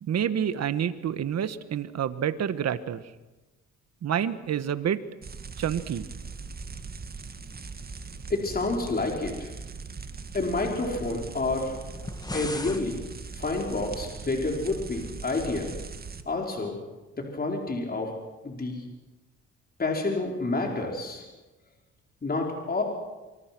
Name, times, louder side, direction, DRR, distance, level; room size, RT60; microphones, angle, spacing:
voice 1, 0.0-3.0 4.0-5.0 5.6-6.1, right 9 dB, 60° right, 12 dB, 1.5 m, -28 dB
sound 1, 5.2-16.2, right 4 dB, 30° right, 1.9 m, -40 dB
voice 2, 8.3-9.5 10.3-11.7 12.3-13.0 13.3-15.7 16.3-16.8 17.1-18.1 18.4-18.8 19.8-21.2 22.2-22.8, left 3 dB, 30° left, 1 dB, 5.2 m, -29 dB
sound 2, 11.9-12.8, left 2 dB, 15° left, 2.2 m, -36 dB
26.0 x 24.5 x 6.2 m, 1.1 s
cardioid pair, 90°, 30 cm